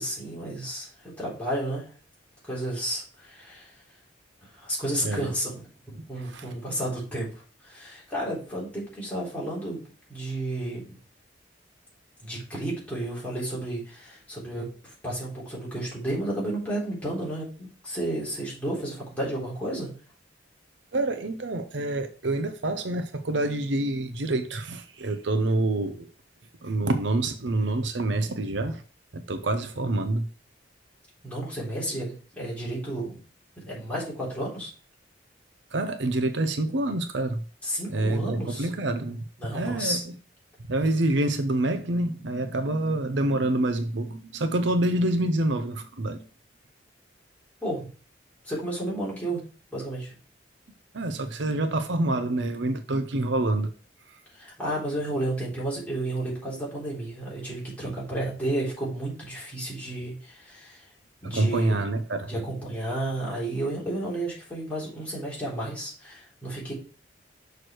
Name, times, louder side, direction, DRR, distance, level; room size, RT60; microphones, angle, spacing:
voice 1, 0.0-1.9 2.5-3.7 4.4-7.3 7.6-9.8 10.1-11.0 12.2-17.5 17.8-19.9 31.2-33.2 33.6-34.7 37.6-38.7 39.4-40.0 47.6-47.9 48.4-49.4 49.7-50.2 54.3-60.8 61.2-61.8 62.3-66.7, right 1 dB, 10° left, 3.5 m, -32 dB
voice 2, 6.2-6.5 20.9-26.1 26.6-28.8 29.1-30.3 35.7-37.4 37.9-39.2 39.5-40.1 40.7-46.2 50.9-53.7 61.2-62.3, right 2 dB, 75° right, 0.7 m, -27 dB
6.3 x 4.8 x 4.6 m
head